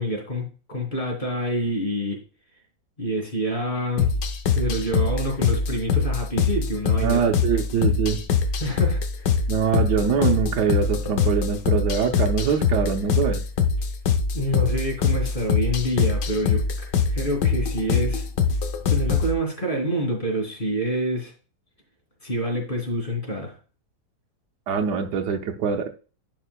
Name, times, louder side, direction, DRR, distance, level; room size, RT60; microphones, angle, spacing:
voice 1, 0.0-2.2 3.0-4.1 4.5-7.2 8.6-9.0 14.3-16.6 17.1-18.3 18.8-21.3 22.2-23.6, equal, 25° left, 1 dB, 2.8 m, -27 dB
sound 1, 4.0-19.3, left 5 dB, 80° left, 1.5 m, -23 dB
voice 2, 7.0-8.2 9.5-13.4 24.7-25.9, right 7 dB, 70° right, 6 dB, 1.4 m, -23 dB
11.0 x 5.5 x 2.2 m, 0.35 s
omnidirectional pair, 1.9 m